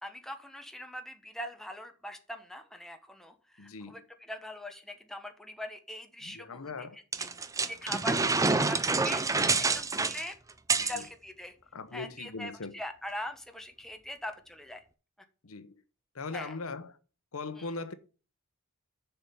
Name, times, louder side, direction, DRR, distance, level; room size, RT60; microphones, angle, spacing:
voice 1, 0.0-7.3 7.7-8.2 8.5-9.3 9.6-10.3 10.8-11.5 11.9-14.8 16.3-16.6 17.6-17.7, left 1 dB, ahead, 1.1 m, -42 dB
voice 2, 3.6-4.1 6.2-7.0 10.8-11.0 11.7-12.8 15.4-15.8 16.1-17.0 17.3-17.9, left 3 dB, 75° left, 0.9 m, -40 dB
sound 1, 7.1-11.0, right 4 dB, 15° right, 0.5 m, -27 dB
7.1 x 5.7 x 7.0 m
head